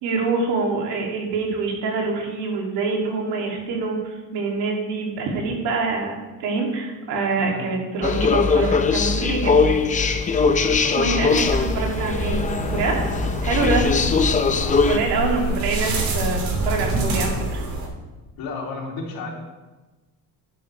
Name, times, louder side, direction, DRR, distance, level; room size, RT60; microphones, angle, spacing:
voice 1, 0.0-9.7 11.0-12.4 12.7-13.0 13.4-13.9 14.9-17.6, right 4 dB, 75° right, -1 dB, 3.0 m, -25 dB
voice 2, 7.4-7.8 10.5-11.3 13.5-13.7 14.5-14.9 18.4-19.3, left 3 dB, 60° left, -1 dB, 3.1 m, -34 dB
sound 1, 8.0-15.0, left 5 dB, 20° left, 0.5 m, -21 dB
sound 2, 11.3-17.9, right 2 dB, 60° right, 3.0 m, -27 dB
13.5 x 11.5 x 3.4 m, 1.2 s
cardioid pair, 155°, 40 cm